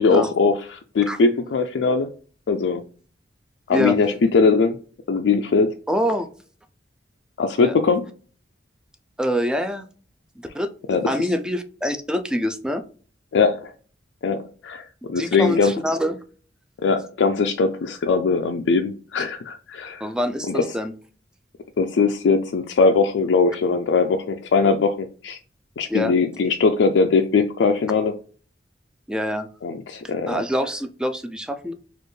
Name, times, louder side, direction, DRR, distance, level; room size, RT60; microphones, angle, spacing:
voice 1, 0.0-2.1 2.5-2.8 3.7-4.8 5.1-5.7 7.4-8.1 10.9-11.2 13.3-13.7 14.2-15.7 16.8-20.1 20.5-20.7 21.8-25.4 25.8-28.1 29.6-30.4, left 4 dB, 70° left, 5 dB, 0.4 m, -20 dB
voice 2, 5.9-6.3 7.6-7.7 9.2-9.8 10.5-10.7 11.1-12.8 15.2-16.2 20.0-20.9 25.9-26.1 29.1-29.5 30.0-31.7, equal, 5° right, 8 dB, 0.3 m, -25 dB
4.3 x 2.4 x 3.1 m, 0.41 s
head